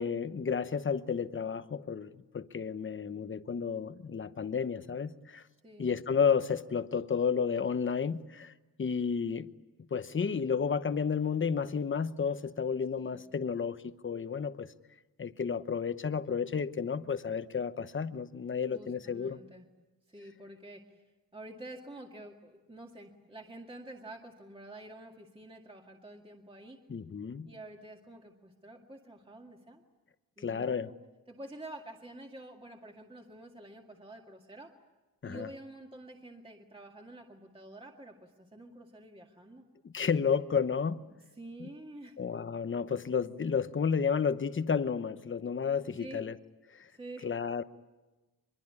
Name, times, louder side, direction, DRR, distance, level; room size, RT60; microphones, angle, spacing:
voice 1, 0.0-5.4 5.8-8.5 8.8-9.5 9.9-14.7 15.2-19.4 26.9-27.5 30.4-30.9 35.2-35.5 39.9-41.1 42.2-46.3 46.7-46.9 47.2-47.6, left 6 dB, 30° left, 12 dB, 1.0 m, -31 dB
voice 2, 18.7-19.7 20.1-21.0 21.3-26.8 27.5-29.8 30.4-30.9 31.3-34.8 35.2-39.7 41.4-42.2 45.9-46.2 46.9-47.3, right 1 dB, 15° right, 1 dB, 2.1 m, -48 dB
24.0 x 23.0 x 9.7 m, 1.2 s
wide cardioid pair, 145°, 38 cm